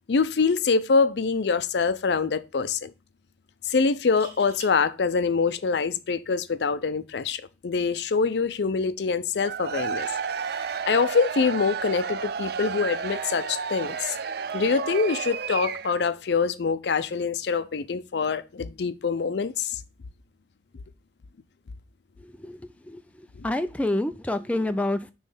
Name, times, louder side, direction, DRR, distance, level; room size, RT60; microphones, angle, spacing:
voice 1, 0.1-2.9 3.6-10.1 10.6-14.2 14.5-19.8 23.4-23.5, left 5 dB, 65° left, 0.5 m, -25 dB
sound 1, 1.1-1.3 1.6-1.7 3.9-4.7 6.6-6.8, right 2 dB, 15° right, 2.7 m, -46 dB
Cheering / Crowd, 9.4-16.1, right 6 dB, 60° right, 0.4 m, -32 dB
voice 2, 22.2-23.0 23.4-25.1, left 1 dB, 5° left, 0.4 m, -28 dB
6.6 x 3.1 x 5.4 m
head